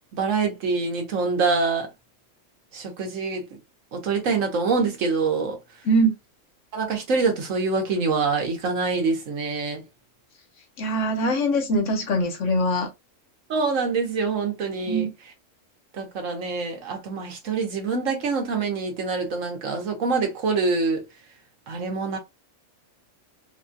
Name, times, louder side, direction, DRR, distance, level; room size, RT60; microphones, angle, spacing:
voice 1, 0.1-1.9 2.7-3.5 3.9-5.6 6.7-9.8 13.5-15.1 15.9-21.1 21.7-22.2, right 4 dB, 75° right, 1.4 m, -25 dB
voice 2, 10.8-12.9 14.9-15.1, right 1 dB, 70° left, 1.3 m, -22 dB
4.1 x 2.3 x 2.6 m
omnidirectional pair, 1.4 m